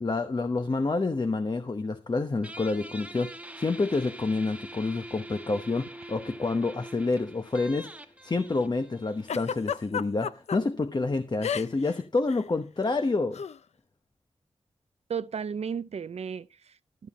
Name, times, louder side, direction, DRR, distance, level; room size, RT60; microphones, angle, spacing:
voice 1, 0.0-3.3 3.6-7.9 8.2-13.4, left 3 dB, 40° left, 0.9 m, -28 dB
Guitar, 2.4-9.6, right 1 dB, 10° right, 1.3 m, -44 dB
Giggle, 9.3-10.6 11.4-11.9 12.2-12.4 13.3-13.6, left 7 dB, 80° left, 0.5 m, -31 dB
voice 2, 15.1-17.1, right 6 dB, 70° right, 0.5 m, -34 dB
13.5 x 7.4 x 4.1 m
cardioid pair, 55°, 11 cm